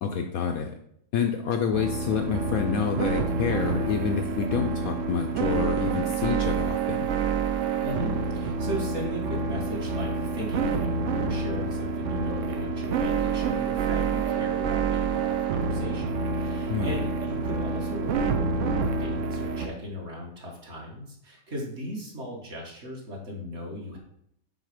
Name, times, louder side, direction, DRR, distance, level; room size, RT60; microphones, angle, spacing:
voice 1, 0.0-0.7 1.1-7.1 16.7-16.9, left 6 dB, 70° left, 5 dB, 0.9 m, -28 dB
sound 1, 1.7-19.7, right 5 dB, 70° right, 0.7 m, -28 dB
voice 2, 7.8-24.0, equal, 40° right, -1 dB, 1.8 m, -37 dB
6.3 x 4.3 x 5.0 m, 0.71 s
omnidirectional pair, 1.8 m